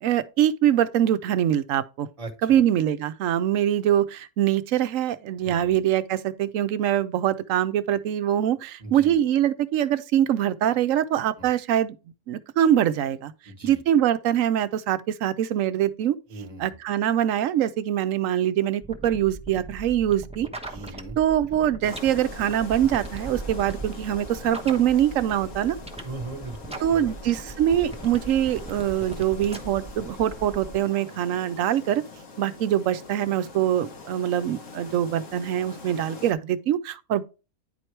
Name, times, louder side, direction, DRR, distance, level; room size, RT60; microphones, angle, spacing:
voice 1, 0.0-2.1 2.4-12.0 12.3-13.3 13.6-16.2 16.6-20.5 21.2-25.8 26.8-32.0 32.4-37.2, right 11 dB, 70° right, 0.9 m, -23 dB
voice 2, 2.2-2.6 5.4-5.7 8.8-9.2 11.4-11.5 13.4-13.8 16.3-16.7 20.7-21.2 26.0-27.1, right 3 dB, 25° right, 1.3 m, -39 dB
sound 1, 18.8-30.8, right 3 dB, 5° right, 0.7 m, -39 dB
sound 2, 21.8-36.3, left 3 dB, 60° left, 1.5 m, -43 dB
10.0 x 4.5 x 3.2 m
omnidirectional pair, 1.5 m